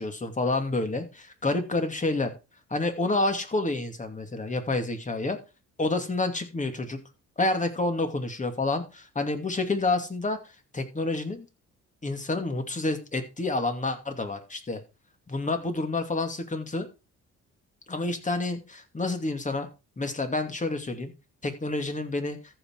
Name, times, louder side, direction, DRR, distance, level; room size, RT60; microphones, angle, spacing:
voice 1, 0.0-2.3 2.7-5.4 5.8-7.0 7.4-10.4 10.7-11.5 12.0-14.8 15.3-16.9 17.9-19.7 20.0-21.1 21.4-22.4, left 2 dB, 25° left, 6 dB, 2.6 m, -28 dB
14.0 x 6.1 x 4.7 m, 0.30 s
cardioid pair, 90°, 30 cm